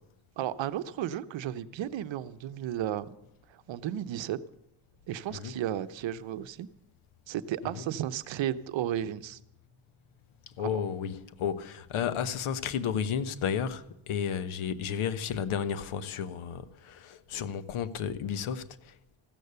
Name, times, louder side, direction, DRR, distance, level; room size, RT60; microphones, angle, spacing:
voice 1, 0.4-3.2 3.5-4.4 5.1-6.7 7.3-9.4 10.6-10.8, right 11 dB, 65° right, 0.8 m, -33 dB
voice 2, 5.3-5.6 7.6-7.8 10.6-19.2, left 8 dB, 75° left, 1.2 m, -33 dB
15.0 x 13.5 x 6.8 m
cardioid pair, 145°, 49 cm